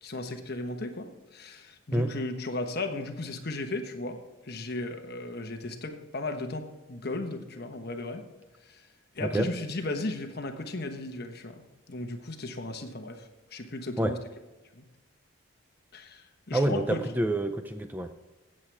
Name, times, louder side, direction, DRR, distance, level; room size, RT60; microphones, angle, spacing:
voice 1, 0.0-4.2 4.4-8.2 8.6-8.8 9.1-14.2 14.7-14.8 15.9-17.0, left 2 dB, 45° left, 5 dB, 1.2 m, -36 dB
voice 2, 16.5-18.1, right 1 dB, 10° right, 7 dB, 0.4 m, -27 dB
16.0 x 7.7 x 3.4 m, 1.1 s
head